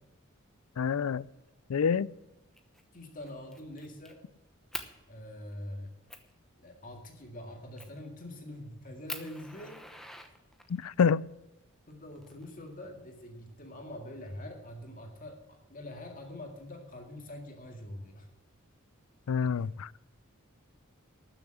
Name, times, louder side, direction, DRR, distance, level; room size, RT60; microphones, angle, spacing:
voice 1, 0.8-1.3 1.7-2.1 10.7-11.2 19.3-20.0, left 6 dB, 85° left, 21 dB, 0.4 m, -27 dB
Fire, 2.5-2.8 3.2-4.1 4.7-4.9 5.5-5.6 6.1-6.3 7.8-8.1 8.5-8.6 9.1-10.9 11.9-12.9, left 1 dB, ahead, 1.0 m, -43 dB
voice 2, 2.9-4.2 5.1-6.0 6.6-10.1 11.9-18.3 19.6-19.7, left 1 dB, 40° left, 3 dB, 2.0 m, -44 dB
13.0 x 7.1 x 8.7 m, 0.97 s
head